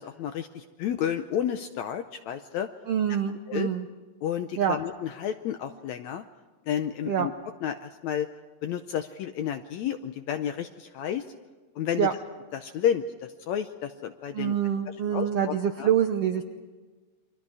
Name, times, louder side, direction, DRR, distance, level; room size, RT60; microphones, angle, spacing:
voice 1, 0.0-2.7 3.5-3.7 4.2-6.2 6.7-7.3 7.6-8.3 8.6-11.2 11.8-12.1 12.5-13.0 13.5-14.5 14.9-15.9, left 9 dB, 75° left, 8 dB, 1.7 m, -31 dB
voice 2, 2.9-3.9 4.6-4.8 7.0-7.3 12.0-12.1 14.3-16.4, right 9 dB, 75° right, 6 dB, 1.4 m, -26 dB
29.5 x 24.0 x 4.9 m, 1.4 s
omnidirectional pair, 4.0 m